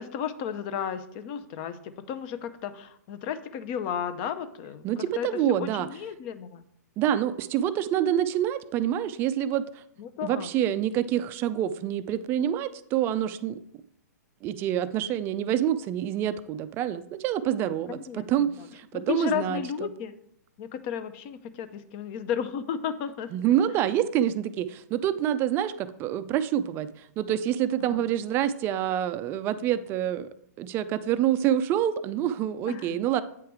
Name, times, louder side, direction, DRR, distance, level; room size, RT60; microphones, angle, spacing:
voice 1, 0.0-6.6 10.0-10.5 17.9-18.7 18.9-20.1 20.6-23.3 27.8-28.0 32.7-33.1, left 8 dB, 35° left, 12 dB, 0.6 m, -34 dB
voice 2, 4.8-5.9 7.0-9.8 10.2-13.6 14.4-19.9 23.3-26.9 27.2-30.3 30.6-33.2, right 11 dB, 25° right, 13 dB, 0.4 m, -27 dB
8.4 x 4.8 x 4.6 m, 0.71 s
hypercardioid pair, 140°, 10 cm